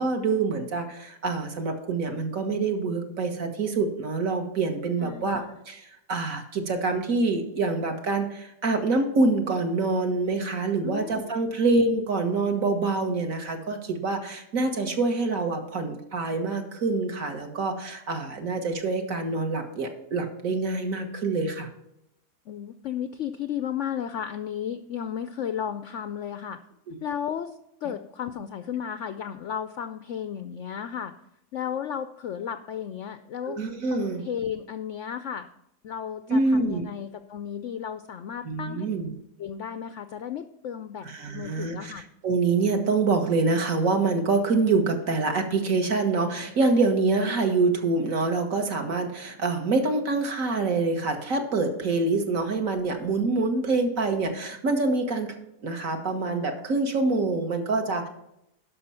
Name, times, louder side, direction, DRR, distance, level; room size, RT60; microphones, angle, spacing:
voice 1, 0.0-21.7 26.9-27.0 33.5-34.2 36.3-36.8 38.4-39.1 41.0-55.3 55.6-58.1, right 3 dB, 55° right, 4 dB, 1.7 m, -26 dB
voice 2, 5.0-5.4 10.8-11.6 22.5-26.6 27.0-31.1 31.5-33.6 33.9-35.5 35.8-38.9 39.4-41.1 41.3-42.0, left 8 dB, 70° left, 10 dB, 0.7 m, -34 dB
12.0 x 5.7 x 5.6 m, 0.81 s
omnidirectional pair, 1.8 m